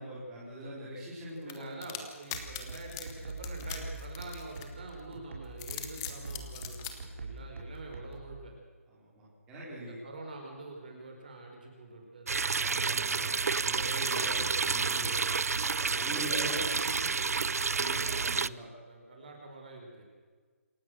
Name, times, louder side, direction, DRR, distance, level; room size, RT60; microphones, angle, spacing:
voice 1, 0.0-1.8 8.9-10.0 12.5-15.3 15.8-16.6 17.7-18.7, right 1 dB, 10° right, -8 dB, 4.6 m, -42 dB
voice 2, 1.4-8.5 9.8-13.4 16.1-20.0, right 2 dB, 35° right, 1 dB, 4.7 m, -46 dB
sound 1, 1.5-4.9 5.5-6.9, left 11 dB, 15° left, 1.2 m, -41 dB
sound 2, 2.3-8.3, right 3 dB, 55° right, 5.4 m, -43 dB
sound 3, 12.3-18.5, right 5 dB, 85° right, 0.6 m, -30 dB
27.5 x 15.5 x 6.3 m, 1.5 s
hypercardioid pair, 180°, 8 cm